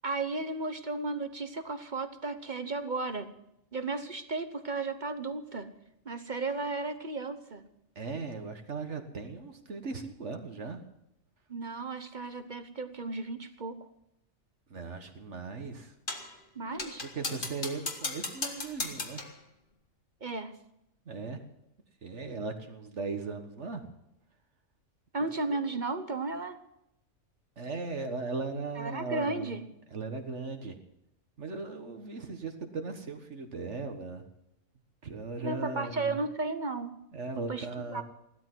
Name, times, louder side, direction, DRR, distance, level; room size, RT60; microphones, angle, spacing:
voice 1, 0.0-3.3 3.7-5.7 6.0-7.6 11.5-13.9 16.5-17.0 20.2-20.5 25.1-26.6 28.8-29.6 35.4-36.9 37.5-37.7 37.9-38.0, right 3 dB, 40° right, 10 dB, 1.0 m, -34 dB
voice 2, 8.0-10.8 14.7-15.9 17.1-19.2 21.1-21.4 22.0-23.9 25.5-25.6 27.6-29.5 29.9-30.8 31.4-34.2 35.0-36.2 37.1-38.0, right 4 dB, 60° right, 5 dB, 1.7 m, -38 dB
sound 1, 16.1-16.4 16.8-19.4, left 3 dB, 40° left, 1.8 m, -36 dB
16.5 x 12.5 x 6.1 m, 0.82 s
omnidirectional pair, 1.4 m